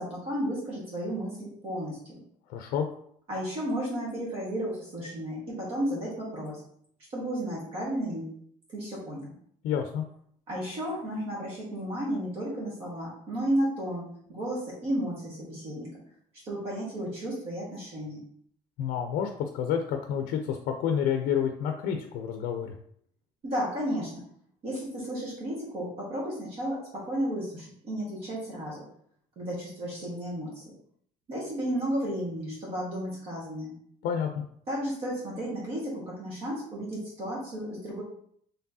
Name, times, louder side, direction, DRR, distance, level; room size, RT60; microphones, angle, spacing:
voice 1, 0.0-2.2 3.3-6.6 7.1-8.3 8.7-9.3 10.5-16.0 16.4-18.2 23.4-24.2 24.6-28.8 29.3-30.6 31.3-33.7 34.7-38.0, equal, 40° right, -5 dB, 1.5 m, -33 dB
voice 2, 2.5-2.9 9.6-10.0 18.8-22.7 34.0-34.3, left 8 dB, 75° left, 4 dB, 0.5 m, -29 dB
4.5 x 3.2 x 2.7 m, 0.64 s
cardioid pair, 180°, 15 cm